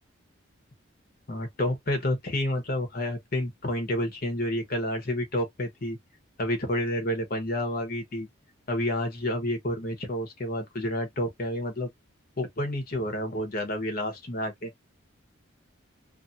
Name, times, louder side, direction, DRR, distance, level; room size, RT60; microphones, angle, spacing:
voice 1, 1.3-6.0 6.4-8.3 8.7-11.9 12.4-14.7, left 1 dB, 45° left, 1.0 m, -29 dB
2.6 x 2.6 x 2.6 m
head